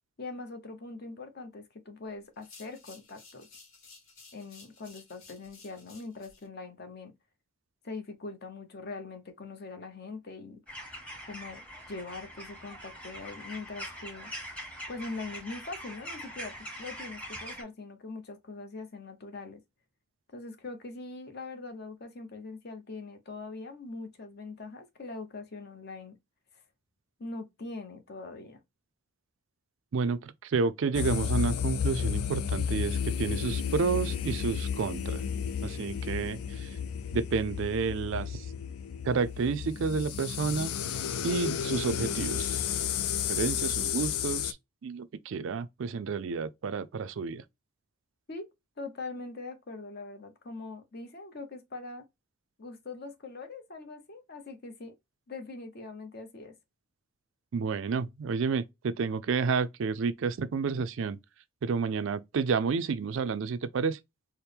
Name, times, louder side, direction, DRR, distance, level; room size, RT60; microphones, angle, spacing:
voice 1, 0.2-3.5 4.3-7.1 7.8-10.6 11.2-14.3 14.9-19.6 20.3-26.2 26.5-26.6 27.2-28.6 48.3-48.4 48.8-52.0 52.6-54.9 55.3-56.5, left 3 dB, 45° left, 0.8 m, -42 dB
sound 1, 2.3-6.5, left 4 dB, 65° left, 1.5 m, -55 dB
sound 2, 10.7-17.6, equal, 5° left, 1.0 m, -43 dB
voice 2, 29.9-35.2 35.6-36.8 37.1-38.5 39.0-40.7 41.2-42.6 43.3-44.6 44.8-47.4 57.5-61.2 61.6-64.0, right 5 dB, 60° right, 0.4 m, -30 dB
sound 3, 30.9-44.5, left 8 dB, 85° left, 0.4 m, -32 dB
4.3 x 2.1 x 3.3 m
head